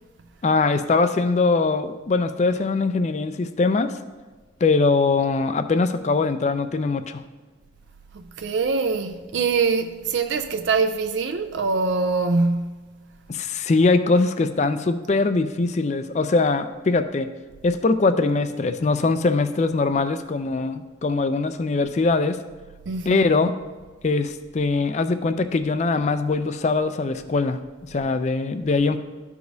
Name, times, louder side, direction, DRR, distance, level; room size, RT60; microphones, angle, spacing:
voice 1, 0.4-4.0 4.6-7.2 13.3-17.3 17.6-22.4 23.1-23.5 24.0-27.6 27.9-29.0, left 3 dB, 35° left, 0.4 m, -22 dB
voice 2, 8.1-12.9 22.9-23.3, right 4 dB, 75° right, 0.4 m, -24 dB
13.0 x 4.8 x 2.7 m
head